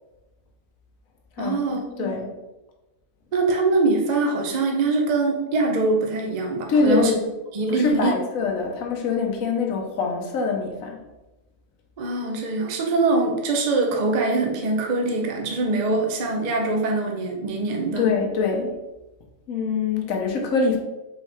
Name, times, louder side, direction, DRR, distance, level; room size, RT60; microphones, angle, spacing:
voice 1, 1.4-2.2 3.3-7.1 7.5-8.1 12.0-18.1, right 3 dB, 40° right, 1 dB, 0.6 m, -23 dB
voice 2, 2.0-2.3 6.7-7.2 7.7-11.0 18.0-18.8 19.5-20.8, left 4 dB, 80° left, 1 dB, 1.2 m, -23 dB
4.6 x 3.1 x 3.3 m, 1.0 s
omnidirectional pair, 1.4 m